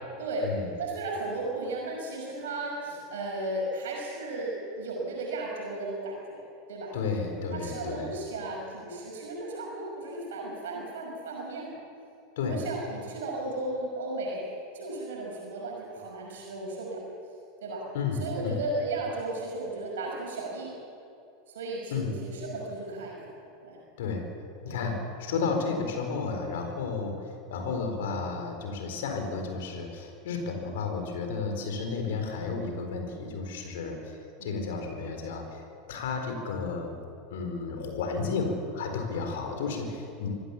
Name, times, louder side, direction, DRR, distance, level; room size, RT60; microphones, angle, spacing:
voice 1, 0.2-0.5 0.8-6.4 6.7-7.0 7.5-11.8 12.4-14.4 14.7-17.0 17.6-17.9 18.2-20.7 21.5-23.3 23.6-23.8 24.7-25.0 31.4-31.5 34.4-34.6, right 2 dB, 65° right, -2 dB, 6.0 m, -35 dB
voice 2, 6.9-8.1 12.4-12.6 17.9-18.6 21.9-22.1 24.0-24.3 24.6-35.6 35.9-36.9 37.3-40.3, left 4 dB, 60° left, 4 dB, 4.3 m, -32 dB
25.5 x 15.0 x 7.2 m, 2.6 s
figure-of-eight pair, 85°, 0 cm